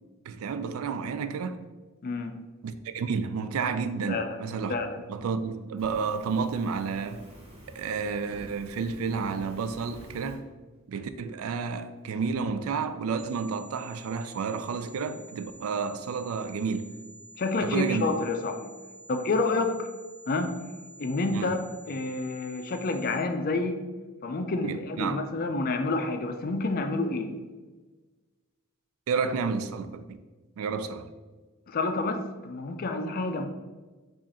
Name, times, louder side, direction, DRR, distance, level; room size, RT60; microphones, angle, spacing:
voice 1, 0.3-1.6 2.6-4.8 5.1-7.3 7.7-10.5 10.9-16.9 17.6-18.1 21.3-21.6 24.6-25.2 29.1-30.2 30.6-31.1, right 5 dB, 80° right, 0.3 m, -31 dB
voice 2, 2.0-2.4 4.1-4.4 4.7-5.0 17.4-18.7 19.1-19.9 20.3-20.6 21.0-21.6 21.9-23.8 24.2-27.4 31.7-33.5, left 3 dB, 45° left, 0.4 m, -29 dB
Fire, 5.8-10.4, equal, 30° right, 1.2 m, -49 dB
sound 1, 13.2-23.2, right 1 dB, 60° right, 0.8 m, -50 dB
4.9 x 2.5 x 4.1 m
head